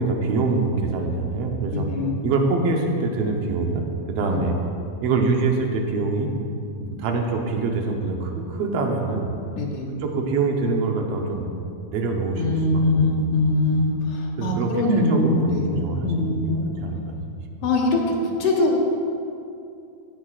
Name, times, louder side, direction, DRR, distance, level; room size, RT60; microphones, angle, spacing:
voice 1, 0.0-1.9 2.2-4.6 5.0-6.3 6.8-9.3 10.0-11.5 11.9-13.3 13.7-13.9 14.4-16.5 16.8-17.2 17.6-17.7, right 3 dB, 75° right, 2 dB, 1.5 m, -25 dB
voice 2, 1.7-2.2 9.6-9.9 12.4-16.7 17.6-18.8, left 2 dB, 55° left, -4 dB, 2.1 m, -22 dB
15.0 x 8.9 x 2.4 m, 2.5 s
omnidirectional pair, 3.9 m